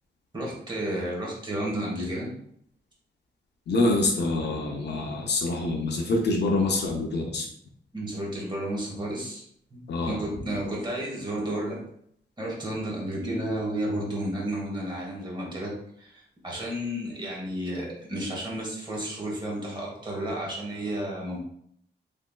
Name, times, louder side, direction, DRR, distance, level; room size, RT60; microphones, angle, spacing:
voice 1, 0.3-2.3 7.9-9.5 9.7-11.8 12.4-21.4, right 1 dB, 25° right, -4 dB, 1.1 m, -32 dB
voice 2, 3.7-7.5 9.9-10.2, left 2 dB, 70° left, 1 dB, 0.5 m, -26 dB
3.4 x 2.9 x 2.2 m, 0.68 s
wide cardioid pair, 145°, 18 cm